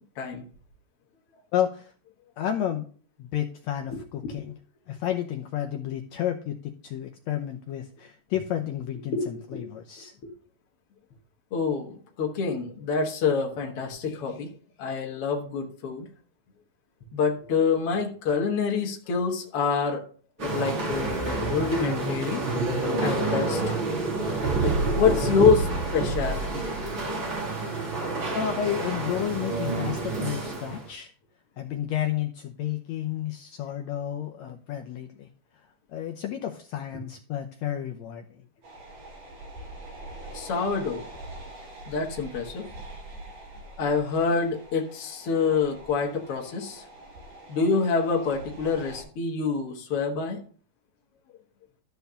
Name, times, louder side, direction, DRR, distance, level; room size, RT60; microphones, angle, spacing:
voice 1, 1.5-1.9 2.4-2.9 3.2-4.5 4.9-10.1 28.3-31.1 31.6-35.3 35.9-38.3, left 10 dB, 75° left, 4 dB, 1.7 m, -31 dB
voice 2, 9.1-9.6 11.5-14.5 14.8-16.1 17.1-20.0 20.4-22.4 23.0-23.8 24.6-26.7 40.3-41.0 41.9-42.7 43.8-46.8 47.5-50.4, left 5 dB, 55° left, 0 dB, 2.0 m, -26 dB
sound 1, 20.4-30.9, right 3 dB, 40° right, 3.1 m, -28 dB
sound 2, 38.6-49.0, right 2 dB, 75° right, 6.7 m, -44 dB
13.0 x 4.6 x 6.8 m, 0.43 s
omnidirectional pair, 3.8 m